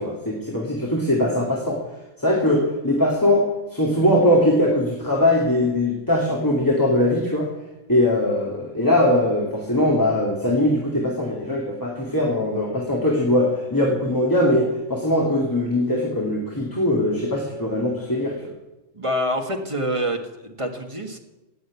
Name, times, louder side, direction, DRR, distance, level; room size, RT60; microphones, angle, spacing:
voice 1, 0.0-1.8 2.2-7.5 7.9-18.3, left 1 dB, 15° left, -2 dB, 2.4 m, -21 dB
voice 2, 18.9-21.2, equal, 25° right, 4 dB, 1.6 m, -26 dB
18.0 x 7.8 x 8.2 m, 1.0 s
omnidirectional pair, 1.3 m